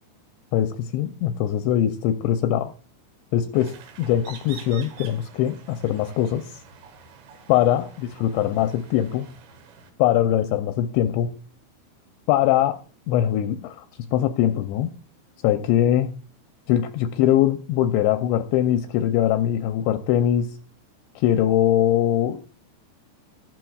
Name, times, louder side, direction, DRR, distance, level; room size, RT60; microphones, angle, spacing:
voice 1, 0.5-2.7 3.3-6.5 7.5-9.3 10.0-11.4 12.3-12.8 13.1-13.8 14.1-14.9 15.4-16.1 16.7-20.6 21.2-22.6, left 11 dB, 80° left, 8 dB, 2.7 m, -22 dB
sound 1, 3.5-9.9, right 6 dB, 75° right, 3.6 m, -47 dB
13.0 x 12.0 x 2.3 m, 0.38 s
omnidirectional pair, 5.4 m